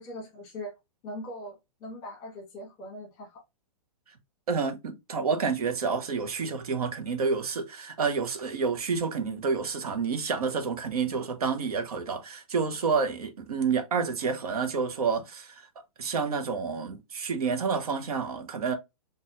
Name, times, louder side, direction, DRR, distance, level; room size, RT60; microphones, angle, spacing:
voice 1, 0.0-3.4, left 1 dB, 20° left, 1.2 m, -41 dB
voice 2, 4.5-15.7 16.0-18.8, right 5 dB, 80° right, 1.0 m, -29 dB
4.2 x 2.6 x 2.5 m
hypercardioid pair, 175°, 19 cm